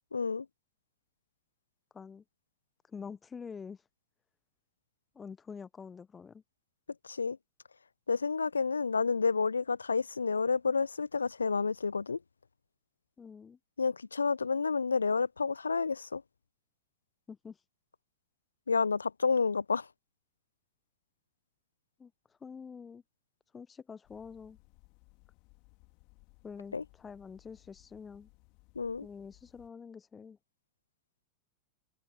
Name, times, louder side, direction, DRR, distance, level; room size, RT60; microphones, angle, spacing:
voice 1, 0.1-0.5 7.0-7.4 8.1-12.2 13.8-16.2 18.7-19.9 26.7-26.8 28.8-29.1, left 4 dB, 75° left, 0.4 m, -30 dB
voice 2, 1.9-2.2 2.9-3.8 5.1-6.4 13.2-13.6 17.3-17.6 22.0-22.1 22.4-23.0 23.5-24.6 26.4-28.3 29.0-30.4, left 6 dB, 15° left, 0.8 m, -46 dB
sound 1, 24.0-29.7, left 32 dB, 45° left, 3.1 m, -63 dB
figure-of-eight pair, 90°, 0 cm